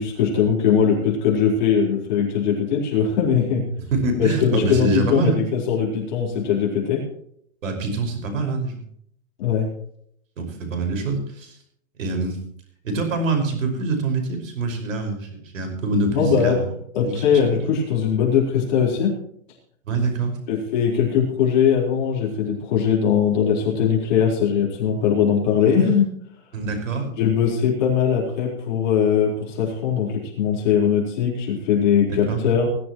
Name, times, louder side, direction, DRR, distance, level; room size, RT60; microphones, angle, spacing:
voice 1, 0.0-3.6 4.2-7.0 9.4-9.7 16.1-16.6 16.9-19.1 20.5-26.1 27.2-32.7, left 7 dB, 35° left, -3 dB, 4.3 m, -20 dB
voice 2, 3.9-5.4 7.6-8.8 10.4-11.5 12.0-12.4 12.8-16.7 17.0-17.3 19.9-20.3 26.5-27.1 32.1-32.4, right 3 dB, 65° right, 4 dB, 5.4 m, -25 dB
20.5 x 12.5 x 3.1 m, 0.66 s
hypercardioid pair, 180°, 42 cm